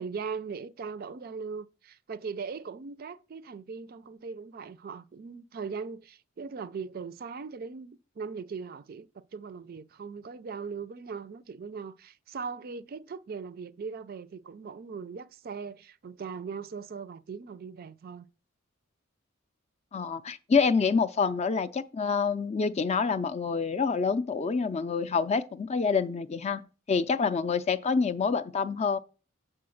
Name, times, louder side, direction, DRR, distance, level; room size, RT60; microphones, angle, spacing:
voice 1, 0.0-18.3, right 5 dB, 45° right, 0.4 m, -39 dB
voice 2, 19.9-29.0, left 5 dB, 30° left, 0.4 m, -27 dB
7.7 x 3.7 x 6.4 m
head